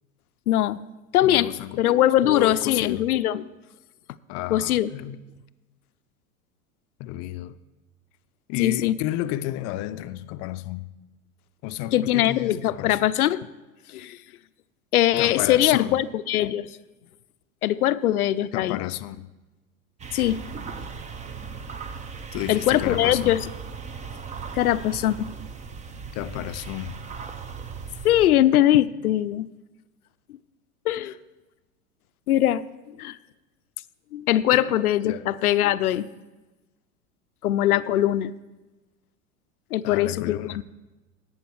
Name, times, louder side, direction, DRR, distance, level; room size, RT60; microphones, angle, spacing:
voice 1, 0.5-0.8 1.1-1.5 1.8-3.4 4.5-4.9 8.6-9.0 11.9-13.4 13.9-14.2 14.9-16.7 17.6-18.8 20.1-20.4 22.5-23.5 24.5-25.3 28.0-29.5 30.9-31.1 32.3-32.6 32.9-33.2 34.1-36.1 37.4-38.3 39.7-40.6, left 13 dB, 90° left, 0.5 m, -21 dB
voice 2, 1.2-1.8 2.2-3.0 4.3-5.2 7.0-7.6 8.5-10.9 11.6-13.0 15.2-16.0 18.5-19.3 22.3-23.3 26.1-27.0 31.0-31.1 34.5-34.6 35.0-35.3 39.8-40.6, left 15 dB, 40° left, 0.5 m, -31 dB
sound 1, 20.0-28.3, right 5 dB, 15° right, 0.5 m, -37 dB
11.5 x 8.4 x 4.6 m
hypercardioid pair, 100°, 43 cm